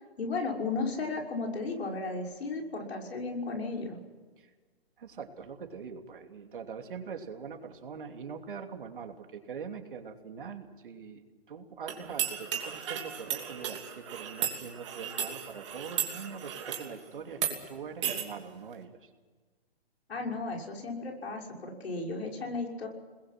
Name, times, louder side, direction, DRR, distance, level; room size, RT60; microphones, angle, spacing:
voice 1, 0.2-4.0 20.1-22.9, left 3 dB, 85° left, 0 dB, 6.1 m, -34 dB
voice 2, 5.0-19.1, right 6 dB, 55° right, 4 dB, 3.0 m, -43 dB
sound 1, 11.9-16.9 17.3-17.6 18.0-18.3, right 9 dB, 30° right, 2.9 m, -35 dB
29.5 x 21.0 x 6.1 m, 1.4 s
hypercardioid pair, 180°, 31 cm